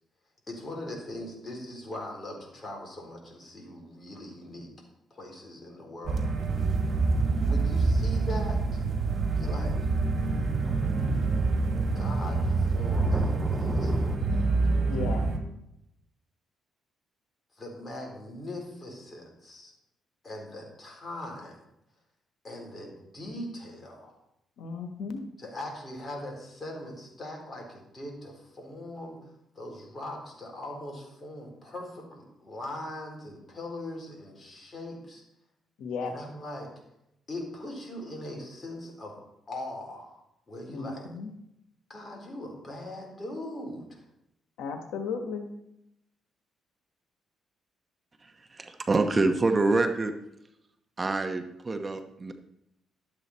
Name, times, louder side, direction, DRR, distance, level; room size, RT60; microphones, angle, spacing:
voice 1, 0.5-4.7 5.1-6.2 7.5-8.8 9.4-9.9 11.9-14.5 17.6-19.7 20.2-21.5 22.4-24.2 25.4-29.3 29.6-35.2 36.1-36.7 37.3-39.2 39.5-40.2 40.5-41.1 41.9-44.0, left 1 dB, 30° left, 0 dB, 3.7 m, -40 dB
sound 1, 6.0-15.4, right 3 dB, 55° right, 2.2 m, -26 dB
sound 2, 9.9-10.0 10.6-14.2, equal, 5° right, 0.8 m, -37 dB
voice 2, 14.8-15.2 24.6-25.2 35.8-36.2 40.7-41.3 44.6-45.5, left 5 dB, 85° left, 6 dB, 1.2 m, -35 dB
voice 3, 48.5-50.1 51.0-52.3, right 3 dB, 30° right, 6 dB, 1.0 m, -26 dB
12.0 x 8.0 x 4.2 m, 0.82 s
cardioid pair, 90°, 0 cm